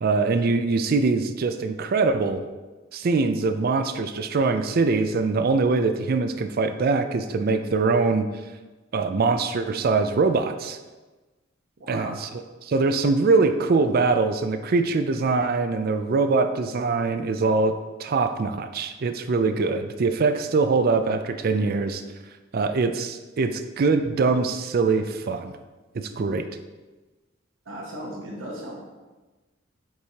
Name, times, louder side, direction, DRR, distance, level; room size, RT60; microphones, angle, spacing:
voice 1, 0.0-2.4 2.9-8.3 8.9-10.8 11.9-12.1 12.6-22.0 22.5-25.5 25.9-26.4, right 4 dB, 50° right, 9 dB, 0.4 m, -23 dB
voice 2, 11.8-12.1 27.6-28.8, right 1 dB, 75° right, -2 dB, 1.0 m, -36 dB
8.2 x 4.7 x 2.8 m, 1.2 s
head